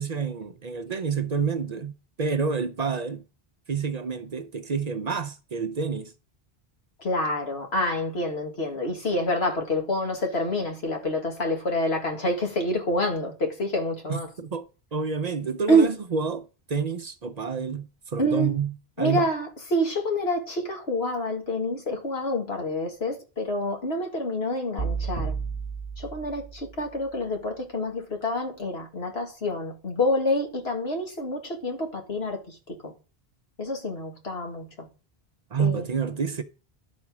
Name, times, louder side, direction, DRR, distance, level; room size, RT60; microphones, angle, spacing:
voice 1, 0.0-3.2 3.7-6.1 14.1-14.7 14.9-19.3 35.5-36.4, right 5 dB, 45° right, 0.7 m, -28 dB
voice 2, 7.0-14.3 15.7-15.9 18.2-18.5 19.0-25.3 26.0-32.9 33.6-34.9 35.6-35.9, left 1 dB, 85° left, 2.2 m, -27 dB
sound 1, 24.8-26.9, right 5 dB, 25° left, 1.4 m, -32 dB
11.5 x 4.3 x 6.0 m
omnidirectional pair, 1.0 m